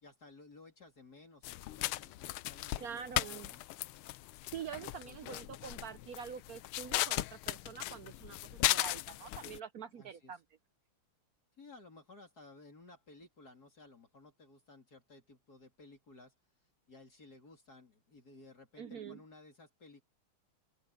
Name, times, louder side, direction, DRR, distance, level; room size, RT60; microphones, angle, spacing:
voice 1, 0.0-3.7 4.8-6.1 10.0-10.3 11.6-16.3 16.9-20.0, left 3 dB, 45° left, 3.6 m, -57 dB
sound 1, 1.4-9.6, left 17 dB, 80° left, 1.4 m, -37 dB
voice 2, 2.8-3.5 4.5-10.4 18.8-19.2, right 7 dB, 75° right, 0.8 m, -45 dB
open air
omnidirectional pair, 2.4 m